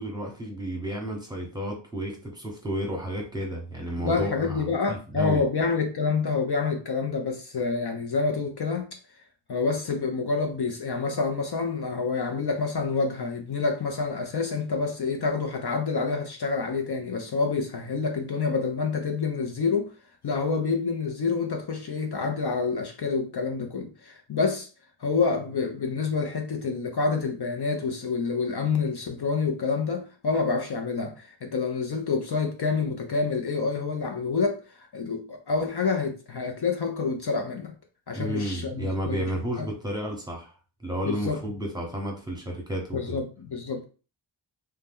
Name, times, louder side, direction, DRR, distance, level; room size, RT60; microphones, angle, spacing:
voice 1, 0.0-5.4 38.1-40.5 40.8-43.2, right 1 dB, 10° right, 1.0 m, -32 dB
voice 2, 4.0-9.0 9.5-19.9 20.2-24.7 25.0-37.7 38.1-39.3 39.6-39.7 41.0-41.4 42.9-43.8, left 4 dB, 55° left, 0.6 m, -27 dB
2.7 x 2.1 x 3.5 m
wide cardioid pair, 50°, 47 cm